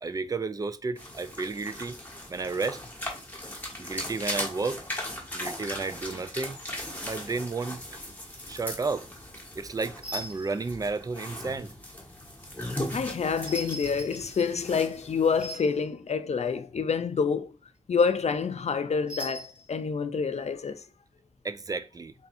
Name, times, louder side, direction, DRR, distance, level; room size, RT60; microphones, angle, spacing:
voice 1, 0.0-2.0 2.3-2.8 3.8-4.9 5.3-6.6 7.0-7.8 8.5-9.1 9.6-11.7 21.4-22.1, right 4 dB, 25° right, 0.3 m, -32 dB
sound 1, 0.9-15.5, left 1 dB, 15° left, 1.3 m, -38 dB
sound 2, 10.0-10.6 13.4-15.1 15.4-15.8 19.1-19.7, left 1 dB, 10° right, 1.1 m, -40 dB
voice 2, 12.9-17.5 17.9-20.8, left 5 dB, 55° left, 0.4 m, -27 dB
3.4 x 2.6 x 4.1 m
wide cardioid pair, 105°, 13 cm